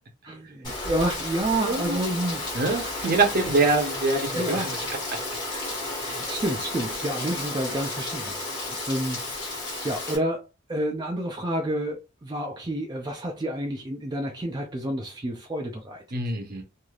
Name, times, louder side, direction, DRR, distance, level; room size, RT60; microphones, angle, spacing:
voice 1, 0.2-2.5 3.4-3.5 4.3-4.7 6.0-16.2, right 1 dB, 20° right, 0.4 m, -30 dB
Rain, 0.6-10.2, left 2 dB, 20° left, 1.3 m, -32 dB
voice 2, 1.6-2.0 2.5-4.8 5.1-5.2 5.5-5.6 16.1-16.6, right 3 dB, 50° right, 0.8 m, -25 dB
3.2 x 2.6 x 2.3 m
head